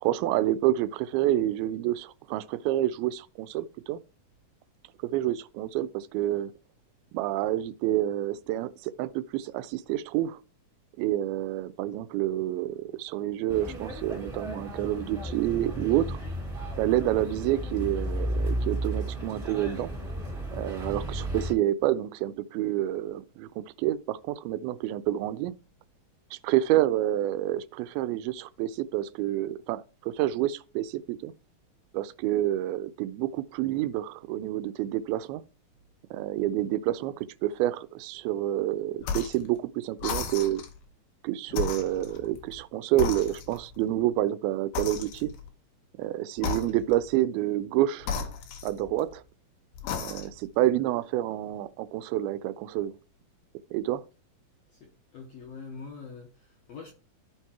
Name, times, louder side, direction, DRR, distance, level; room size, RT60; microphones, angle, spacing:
voice 1, 0.0-4.0 5.0-6.5 7.1-10.4 11.0-16.2 16.8-19.9 20.5-25.5 26.3-31.3 31.9-35.4 36.1-40.6 41.2-45.3 46.0-48.1 48.6-49.2 50.0-53.0 53.7-54.0, right 13 dB, 90° right, 2.4 m, -28 dB
sound 1, 13.5-21.5, right 1 dB, 40° right, 0.7 m, -33 dB
sound 2, 39.0-39.5 40.0-40.8 41.5-42.6 43.0-43.8 44.7-45.5 46.4-47.1 48.0-49.1 49.7-50.5, left 6 dB, 85° left, 3.0 m, -34 dB
voice 2, 54.7-56.9, left 5 dB, 70° left, 1.5 m, -44 dB
14.0 x 4.6 x 2.9 m
omnidirectional pair, 4.3 m